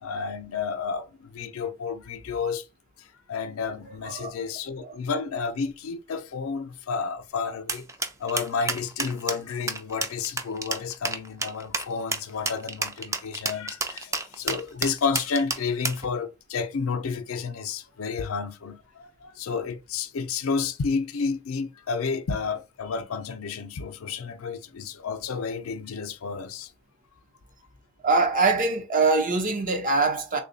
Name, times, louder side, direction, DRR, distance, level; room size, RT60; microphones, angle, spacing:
voice 1, 0.0-2.7 3.0-7.9 8.2-26.7, left 5 dB, 85° left, 0.5 m, -31 dB
sound 1, 7.7-16.1, right 3 dB, 15° right, 0.4 m, -30 dB
voice 2, 28.0-30.4, right 3 dB, 40° right, 0.7 m, -23 dB
3.5 x 2.2 x 3.9 m
head